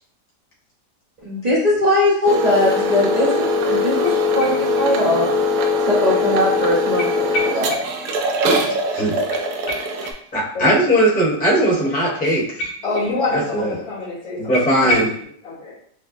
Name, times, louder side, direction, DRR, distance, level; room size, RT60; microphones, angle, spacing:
voice 1, 1.2-5.3 5.9-7.8, left 1 dB, 40° right, -7 dB, 0.6 m, -20 dB
sound 1, 2.3-10.1, left 2 dB, 70° right, 0.9 m, -21 dB
sound 2, 4.0-5.2 5.5-5.6 7.0-8.2 8.4-8.5 8.8-8.9 9.3-10.8 12.2-13.4 13.7-13.8 14.0-14.1 14.5-15.2, right 1 dB, 85° left, 1.8 m, -30 dB
voice 2, 10.3-12.6 13.3-13.8 14.4-15.1, equal, 5° left, -6 dB, 0.9 m, -19 dB
voice 3, 12.8-14.4 14.8-15.0 15.5-15.7, left 3 dB, 60° left, -6 dB, 1.9 m, -25 dB
5.2 x 2.1 x 2.6 m, 0.63 s
omnidirectional pair, 1.8 m